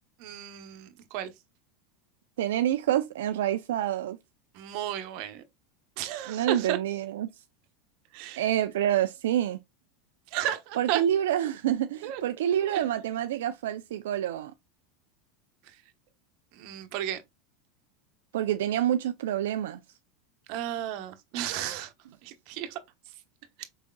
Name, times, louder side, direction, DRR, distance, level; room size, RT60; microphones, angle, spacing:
voice 1, 0.2-1.3 4.5-5.4 6.0-6.8 8.1-8.4 10.3-11.0 12.0-12.2 12.7-12.8 16.6-17.2 20.5-21.9 22.2-22.8, right 11 dB, 60° right, 0.9 m, -33 dB
voice 2, 2.4-4.2 6.3-7.3 8.4-9.6 10.8-14.5 18.3-19.8, right 11 dB, 85° right, 0.3 m, -27 dB
4.9 x 3.7 x 2.2 m
supercardioid pair, 110°, 0 cm